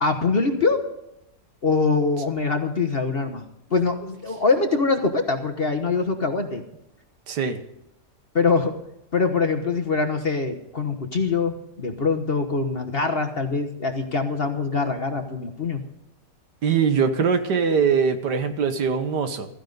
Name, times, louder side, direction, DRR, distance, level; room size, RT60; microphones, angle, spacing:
voice 1, 0.0-0.8 1.6-3.4 3.7-6.6 8.3-8.7 9.1-15.8, left 4 dB, 40° left, 6 dB, 1.2 m, -23 dB
voice 2, 7.3-7.6 16.6-19.5, right 6 dB, 70° right, 9 dB, 1.8 m, -22 dB
15.5 x 14.5 x 4.0 m, 0.83 s
omnidirectional pair, 1.9 m